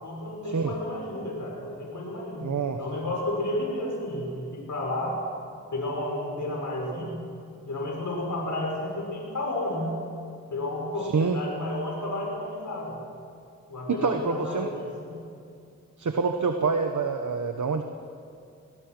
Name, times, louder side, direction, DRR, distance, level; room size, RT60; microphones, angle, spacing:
voice 1, 0.0-5.2 5.7-7.2 7.7-9.9 10.5-13.0 13.7-15.2, left 1 dB, 85° left, -1 dB, 5.8 m, -32 dB
voice 2, 2.4-2.8 11.0-11.4 13.9-14.7 16.0-17.8, right 5 dB, 85° right, 6 dB, 1.2 m, -26 dB
25.0 x 18.5 x 6.2 m, 2.4 s
cardioid pair, 55°, 29 cm